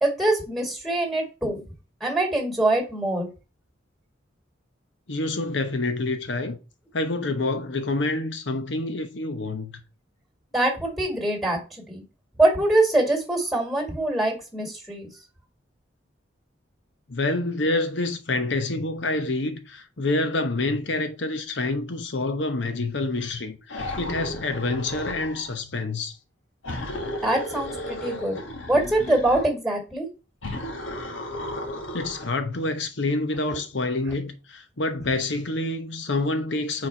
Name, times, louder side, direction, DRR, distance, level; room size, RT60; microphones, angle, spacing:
voice 1, 0.0-1.6 2.0-3.3 10.5-11.6 11.9-12.0 12.4-15.1 27.2-28.4 28.7-30.1, right 1 dB, ahead, 2.0 m, -23 dB
voice 2, 5.1-6.6 6.9-9.7 17.1-26.2 31.9-36.9, left 2 dB, 65° left, 0.9 m, -27 dB
sound 1, 23.7-25.5 26.6-29.5 30.4-32.4, left 1 dB, 85° left, 1.5 m, -34 dB
4.6 x 4.2 x 5.6 m
head